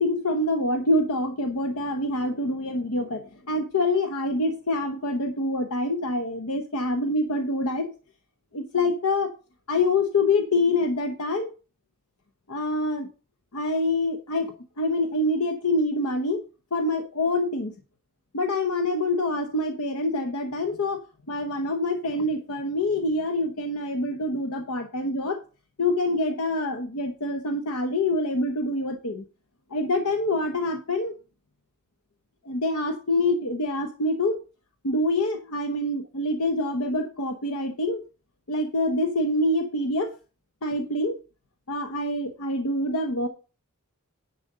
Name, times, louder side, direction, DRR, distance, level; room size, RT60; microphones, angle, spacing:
voice 1, 0.0-7.9 8.5-9.3 9.7-11.5 12.5-13.1 13.5-16.4 16.7-17.7 18.3-21.0 21.3-25.4 25.8-29.2 29.7-31.1 32.4-34.4 34.8-38.0 38.5-40.1 40.6-41.2 41.7-43.3, left 2 dB, 85° left, 6 dB, 0.9 m, -26 dB
10.5 x 4.3 x 6.6 m, 0.34 s
head